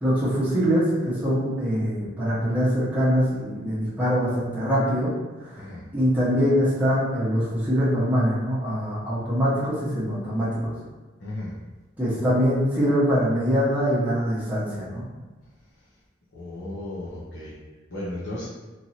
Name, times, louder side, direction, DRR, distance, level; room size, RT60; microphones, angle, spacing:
voice 1, 0.0-5.1 5.9-10.7 12.0-15.0, equal, 10° right, -10 dB, 0.8 m, -23 dB
voice 2, 11.2-11.5 16.3-17.5 17.9-18.5, left 1 dB, 70° left, -9 dB, 0.7 m, -34 dB
3.0 x 2.6 x 2.8 m, 1.2 s
head